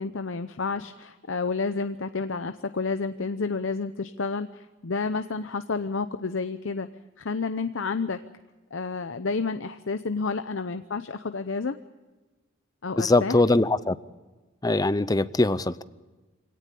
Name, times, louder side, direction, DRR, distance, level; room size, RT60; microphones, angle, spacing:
voice 1, 0.0-6.9 7.2-8.2 8.7-11.8 12.8-13.4, left 4 dB, 70° left, 9 dB, 0.8 m, -30 dB
voice 2, 13.0-14.0 14.6-15.8, left 2 dB, 20° left, 15 dB, 0.6 m, -22 dB
24.5 x 18.0 x 8.6 m, 1.2 s
head